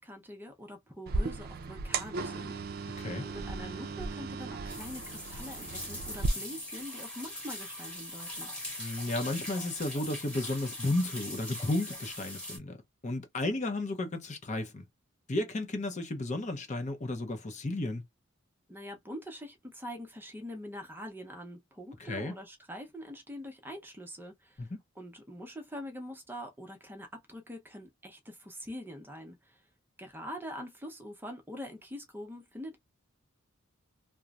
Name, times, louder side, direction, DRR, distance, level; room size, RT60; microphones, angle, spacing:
voice 1, 0.0-8.5 18.7-24.7 25.0-29.6 30.0-32.8, equal, 10° right, 0.7 m, -44 dB
sound 1, 1.1-6.3, right 3 dB, 45° right, 0.4 m, -36 dB
sound 2, 4.7-12.6, left 1 dB, 5° left, 1.2 m, -41 dB
voice 2, 8.8-12.8 13.0-14.8 15.3-18.0 22.0-22.4 24.6-24.8, left 2 dB, 35° left, 0.6 m, -33 dB
3.0 x 2.1 x 2.3 m
head